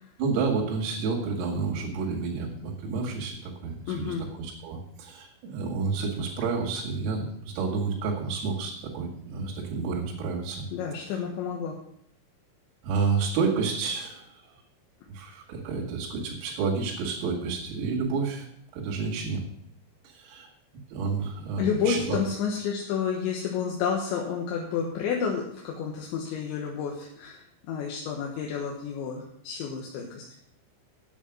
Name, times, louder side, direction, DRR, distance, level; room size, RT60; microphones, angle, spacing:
voice 1, 0.2-10.7 12.8-14.4 15.1-18.5 18.7-19.5 20.0-20.5 20.9-22.2, right 4 dB, 80° right, -3 dB, 4.8 m, -30 dB
voice 2, 3.9-4.2 10.7-11.7 21.6-30.2, left 6 dB, 70° left, -1 dB, 3.3 m, -30 dB
10.0 x 9.0 x 6.0 m, 0.69 s
omnidirectional pair, 6.0 m